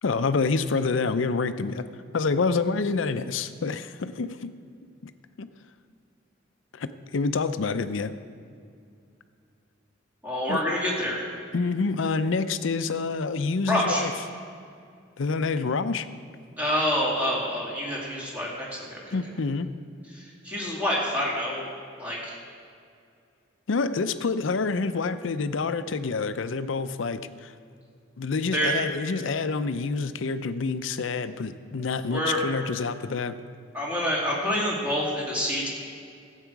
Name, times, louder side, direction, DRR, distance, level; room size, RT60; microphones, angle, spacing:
voice 1, 0.0-1.8 2.1-4.5 5.0-5.1 5.4-5.5 6.7-8.1 10.5-10.6 11.5-14.1 15.2-16.1 19.1-19.7 23.7-27.5 28.2-33.4, left 4 dB, 80° left, 12 dB, 0.5 m, -27 dB
voice 2, 10.2-11.2 13.7-14.0 16.6-19.2 20.1-21.7 22.0-22.4 28.5-28.8 32.1-32.4 33.7-35.7, equal, 10° right, -5 dB, 2.4 m, -27 dB
14.5 x 8.2 x 4.7 m, 2.4 s
head